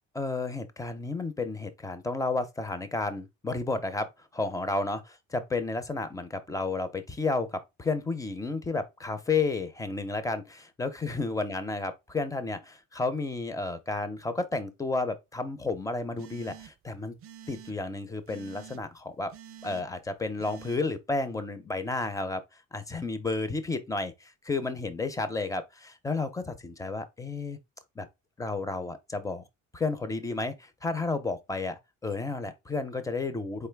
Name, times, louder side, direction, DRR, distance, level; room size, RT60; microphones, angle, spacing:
voice 1, 0.1-5.0 5.3-17.2 17.5-19.3 19.6-22.4 22.7-27.6 28.0-28.1 28.4-29.4 29.7-33.7, left 3 dB, 10° left, 0.5 m, -32 dB
sound 1, 16.2-16.9 17.2-17.7 18.3-18.8 19.3-19.8 20.4-20.8, right 9 dB, 45° right, 0.4 m, -48 dB
4.2 x 3.2 x 3.4 m
cardioid pair, 160°, 33 cm